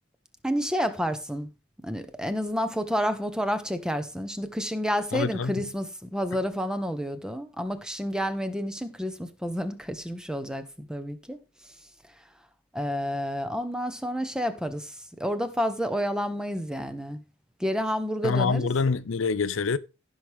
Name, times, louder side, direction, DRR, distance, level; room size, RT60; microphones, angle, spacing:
voice 1, 0.4-1.5 1.8-11.4 12.7-17.2 17.6-18.7, equal, 5° right, 0.9 m, -30 dB
voice 2, 5.1-5.5 18.2-19.8, left 4 dB, 70° left, 0.6 m, -25 dB
15.5 x 6.1 x 3.5 m
head